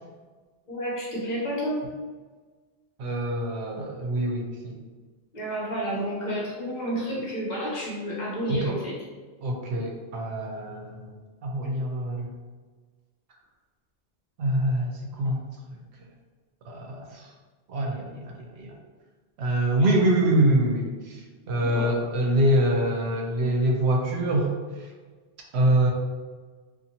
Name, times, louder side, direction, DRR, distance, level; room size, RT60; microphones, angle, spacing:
voice 1, 0.7-1.8 5.3-8.9 9.7-9.8 21.6-21.9, equal, 45° left, -6 dB, 0.9 m, -30 dB
voice 2, 3.0-4.7 8.5-8.7 9.4-11.1 11.4-12.3 14.4-15.4 16.7-17.3 17.7-18.7 19.4-24.5 24.8-24.9 25.5-25.9, right 1 dB, 80° right, 0 dB, 0.8 m, -25 dB
2.7 x 2.5 x 2.7 m, 1.4 s
omnidirectional pair, 1.1 m